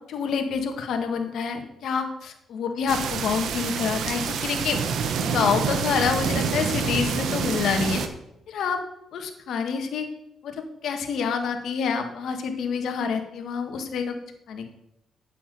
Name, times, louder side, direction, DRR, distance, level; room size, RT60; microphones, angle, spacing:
voice 1, 0.1-4.8 5.2-8.0 8.5-8.8 9.1-10.1 10.4-14.1 14.5-14.7, left 6 dB, 70° left, 5 dB, 1.8 m, -27 dB
sound 1, 2.9-8.1, right 6 dB, 70° right, 1.2 m, -27 dB
8.5 x 7.3 x 8.4 m, 0.83 s
cardioid pair, 90°, 0 cm